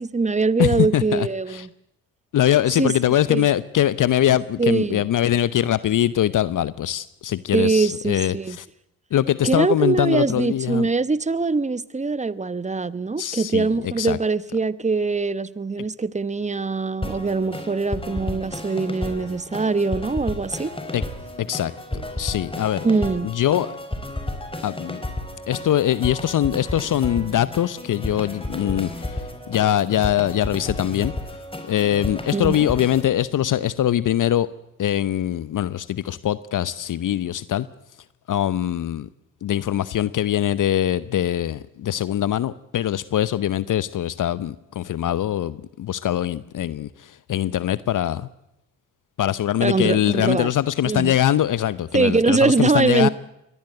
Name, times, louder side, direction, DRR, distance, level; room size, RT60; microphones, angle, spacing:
voice 1, 0.0-1.7 2.8-2.9 3.3-3.4 4.6-5.1 7.5-8.6 9.4-20.7 22.8-23.3 32.3-32.6 49.6-50.5 50.8-51.1 51.9-53.1, right 4 dB, 20° right, 1.1 m, -22 dB
voice 2, 0.6-1.7 2.3-8.7 9.1-10.9 13.2-14.2 20.9-21.0 21.4-21.7 22.2-22.9 23.2-23.7 24.6-25.0 25.5-31.1 31.7-34.5 34.8-37.7 38.3-39.1 39.4-48.3 49.2-53.1, left 11 dB, 55° left, 0.9 m, -22 dB
sound 1, 17.0-33.0, left 1 dB, 15° left, 4.2 m, -32 dB
23.0 x 18.0 x 7.9 m
hypercardioid pair, 50°, 38 cm